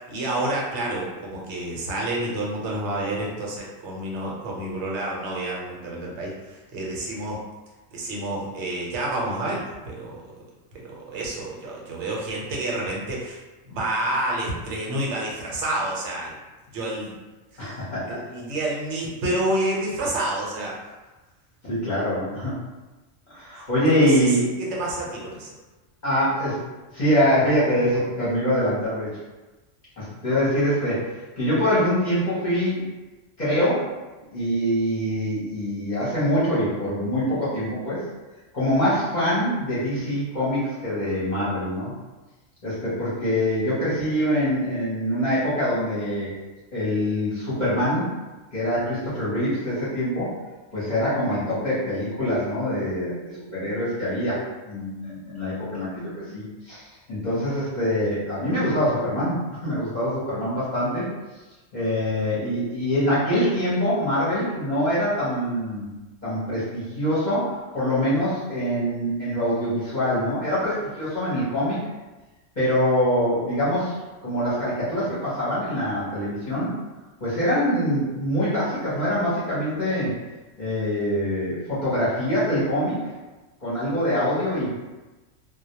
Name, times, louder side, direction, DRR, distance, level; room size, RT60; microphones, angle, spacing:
voice 1, 0.0-7.4 7.9-10.2 10.8-13.4 13.6-16.4 16.7-17.1 17.5-17.7 18.1-20.8 23.6-25.5, right 1 dB, 65° right, -3 dB, 0.9 m, -29 dB
voice 2, 17.6-18.2 21.6-22.5 23.3-24.4 26.0-26.6 26.9-29.2 30.0-32.8 33.4-33.9 34.3-38.0 38.5-41.9 42.6-46.3 46.7-48.1 48.5-50.3 50.7-54.4 54.7-56.8 57.1-61.1 61.7-65.9 66.2-71.8 72.6-76.8 77.2-80.1 80.6-83.0 83.6-84.8, equal, 45° left, -10 dB, 0.7 m, -24 dB
2.1 x 2.1 x 2.8 m, 1.2 s
omnidirectional pair, 1.3 m